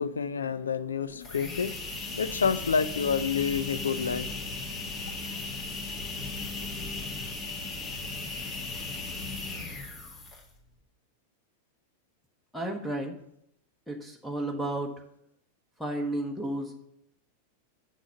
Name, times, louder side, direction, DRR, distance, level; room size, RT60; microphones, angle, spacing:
voice 1, 0.0-1.7 2.1-4.3, left 6 dB, 70° left, 0.5 m, -28 dB
sound 1, 1.2-10.6, left 3 dB, 30° left, 1.9 m, -36 dB
voice 2, 12.5-13.2 13.9-14.9 15.8-16.7, right 1 dB, ahead, 1.1 m, -32 dB
6.6 x 6.2 x 7.0 m
figure-of-eight pair, 90°, 0 cm